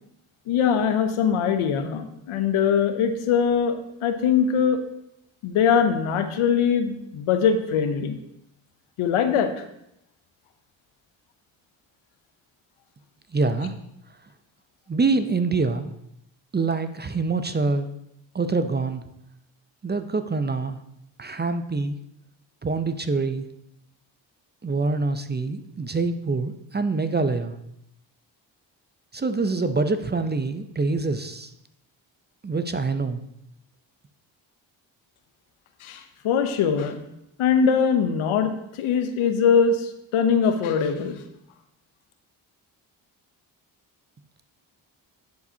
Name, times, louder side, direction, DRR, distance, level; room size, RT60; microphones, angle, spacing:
voice 1, 0.5-4.8 5.4-8.2 9.0-9.5 35.8-37.0 37.4-38.5 38.8-41.2, left 7 dB, 80° left, 8 dB, 0.8 m, -22 dB
voice 2, 13.3-13.7 14.9-15.9 16.5-17.9 18.3-19.0 19.8-20.8 21.2-22.0 22.6-23.5 24.6-27.5 29.1-31.5 32.4-33.2, right 3 dB, 20° right, 10 dB, 0.5 m, -25 dB
10.5 x 4.8 x 2.8 m, 0.80 s
supercardioid pair, 45°, 49 cm